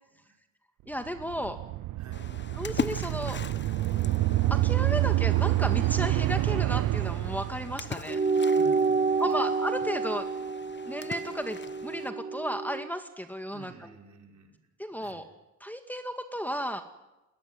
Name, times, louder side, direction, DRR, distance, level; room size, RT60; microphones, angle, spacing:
voice 1, 0.9-1.6 2.5-3.4 4.5-8.2 9.2-10.3 10.9-14.0 14.8-15.3 15.6-16.8, equal, 5° left, 6 dB, 2.1 m, -34 dB
sound 1, 1.1-8.0, right 16 dB, 75° right, 0.9 m, -27 dB
voice 2, 2.0-2.3 8.5-9.2 13.5-14.6 15.0-15.2, right 4 dB, 50° right, 2 dB, 5.2 m, -50 dB
Splash splatter, 2.1-12.1, left 5 dB, 30° left, 1.2 m, -41 dB
sound 2, 8.1-12.9, right 4 dB, 25° right, 1.9 m, -28 dB
22.0 x 17.5 x 9.6 m, 1.0 s
supercardioid pair, 65°, 35 cm